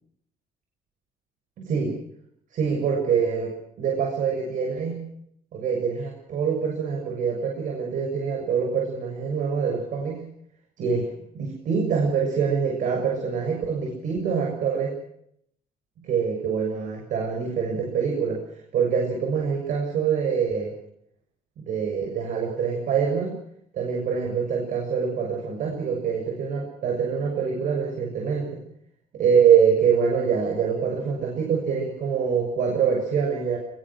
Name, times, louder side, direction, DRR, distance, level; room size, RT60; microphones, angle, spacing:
voice 1, 1.6-2.0 2.5-5.1 5.5-10.2 10.8-14.9 16.0-18.4 18.7-20.7 21.6-23.4 23.7-28.6 29.1-33.6, right 6 dB, 55° right, 2 dB, 7.2 m, -25 dB
24.0 x 23.0 x 6.4 m, 0.71 s
cardioid pair, 160°, 16 cm